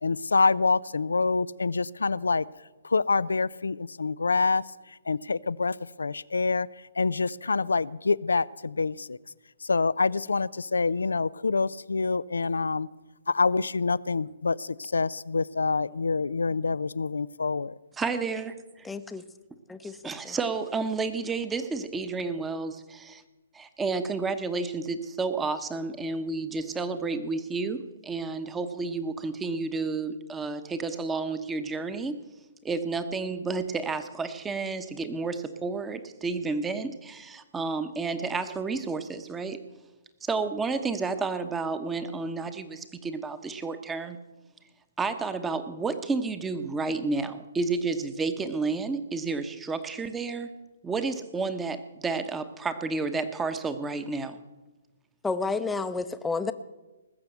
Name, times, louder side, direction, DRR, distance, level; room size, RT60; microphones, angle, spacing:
voice 1, 0.0-2.4 2.8-6.7 7.0-9.2 9.6-12.9 13.3-17.8, left 4 dB, 85° left, 21 dB, 0.4 m, -26 dB
voice 2, 18.0-18.9 19.8-23.2 23.5-32.2 32.6-39.6 40.2-44.2 45.0-50.5 50.8-54.4, right 4 dB, 10° right, 10 dB, 1.1 m, -31 dB
voice 3, 18.8-19.2 19.7-20.0 20.2-20.4 55.2-56.5, left 4 dB, 5° left, 11 dB, 0.7 m, -30 dB
19.5 x 7.0 x 7.8 m, 1.1 s
hypercardioid pair, 135°, 0 cm